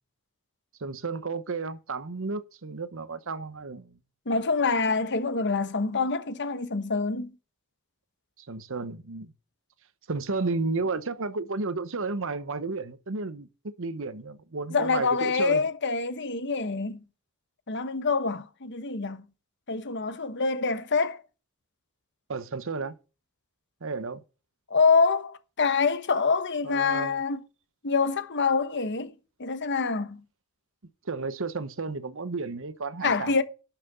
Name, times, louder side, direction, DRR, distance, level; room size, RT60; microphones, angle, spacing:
voice 1, 0.8-3.9 8.4-9.3 10.1-15.7 22.3-23.0 23.8-24.2 26.6-27.2 31.0-33.3, right 3 dB, 60° right, 1.0 m, -32 dB
voice 2, 4.3-7.3 14.7-17.0 17.7-19.2 19.7-21.2 24.7-27.4 27.8-29.1 29.4-30.2 33.0-33.4, left 4 dB, 55° left, 1.2 m, -26 dB
11.5 x 5.9 x 6.7 m
head